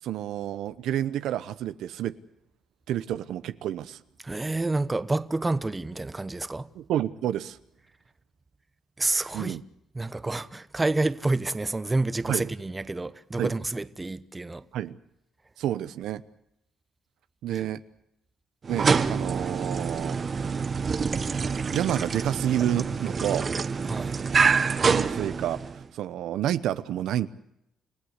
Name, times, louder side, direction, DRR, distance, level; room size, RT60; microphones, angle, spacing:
voice 1, 0.0-2.1 2.9-4.0 6.7-7.6 9.3-9.6 12.3-12.5 13.4-13.5 14.7-15.0 15.6-16.2 17.4-17.8 18.7-20.2 21.7-23.5 24.8-25.6 25.9-27.3, right 11 dB, 85° right, 0.9 m, -29 dB
voice 2, 4.2-6.7 9.0-9.6 9.9-14.6 23.9-24.1, right 2 dB, 20° right, 1.1 m, -28 dB
sound 1, 18.6-25.8, right 5 dB, 40° right, 1.1 m, -26 dB
29.5 x 16.0 x 8.2 m
cardioid pair, 90°, 0 cm